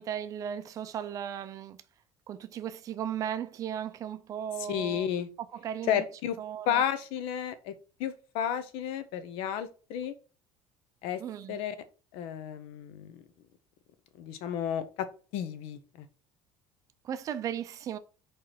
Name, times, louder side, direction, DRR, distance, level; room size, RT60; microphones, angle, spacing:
voice 1, 0.0-1.8 2.3-5.1 5.5-6.0 6.4-6.8 11.2-11.6 17.0-18.0, right 9 dB, 35° right, 0.6 m, -36 dB
voice 2, 4.7-5.3 5.9-6.4 6.7-7.7 8.0-10.1 11.0-11.2 11.5-11.8 12.1-13.2 14.2-15.1 15.3-15.8, left 9 dB, 70° left, 1.0 m, -32 dB
4.7 x 4.5 x 4.8 m
cardioid pair, 165°, 10 cm